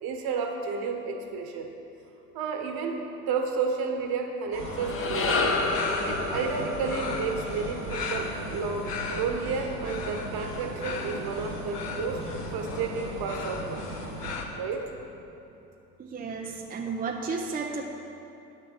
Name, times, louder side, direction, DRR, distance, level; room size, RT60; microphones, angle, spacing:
voice 1, 0.0-1.7 2.3-5.6 6.0-12.2 12.5-13.8 14.6-14.9, right 5 dB, 50° right, 4 dB, 1.5 m, -31 dB
sound 1, 4.5-14.4, right 1 dB, 90° right, 2.3 m, -38 dB
sound 2, 4.6-9.0, left 3 dB, 25° left, 1.2 m, -30 dB
sound 3, 5.7-14.4, left 4 dB, 80° left, 1.1 m, -38 dB
voice 2, 16.0-17.9, right 4 dB, 20° right, 1 dB, 0.7 m, -33 dB
9.3 x 6.5 x 7.5 m, 2.9 s
hypercardioid pair, 75°, 47 cm